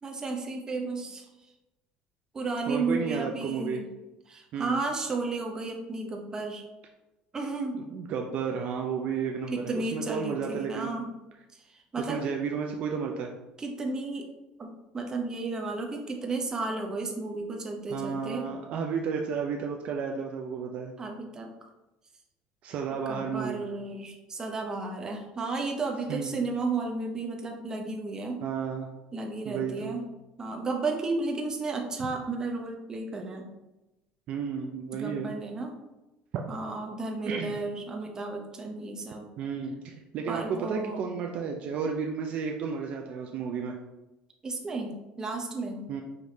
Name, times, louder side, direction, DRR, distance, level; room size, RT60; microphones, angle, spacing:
voice 1, 0.0-1.3 2.3-3.9 4.3-6.7 7.3-7.8 9.5-11.1 11.5-12.2 13.6-14.3 14.6-18.5 21.0-21.7 23.1-28.4 29.1-30.1 30.4-33.5 34.9-35.7 36.5-39.2 40.3-41.1 44.4-45.9, right 3 dB, 25° right, 1 dB, 0.8 m, -33 dB
voice 2, 2.7-3.8 4.5-4.8 7.7-10.9 12.0-13.4 17.9-20.9 22.6-23.6 26.1-26.4 28.4-28.9 29.5-30.0 32.0-32.1 34.3-35.4 37.3-37.6 39.4-43.8 45.9-46.0, right 6 dB, 55° right, 2 dB, 0.4 m, -32 dB
5.0 x 3.0 x 2.7 m, 1.0 s
supercardioid pair, 115°, 3 cm